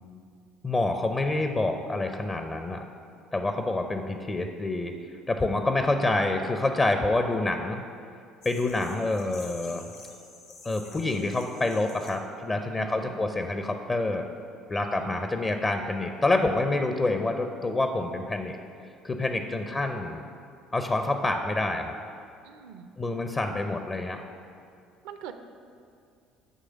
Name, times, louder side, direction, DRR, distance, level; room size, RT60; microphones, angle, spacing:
voice 1, 0.6-2.8 3.3-4.9 5.3-7.8 8.4-9.8 10.6-14.3 14.7-18.6 19.0-20.2 20.7-21.9 23.0-24.2, left 2 dB, 30° left, 6 dB, 0.5 m, -27 dB
sound 1, 8.4-12.1, left 4 dB, 70° left, 1.0 m, -49 dB
voice 2, 12.7-13.2 14.7-15.3 22.4-23.0 25.0-25.3, right 8 dB, 70° right, 8 dB, 0.5 m, -44 dB
9.2 x 3.3 x 6.3 m, 2.4 s
hypercardioid pair, 60°, 0 cm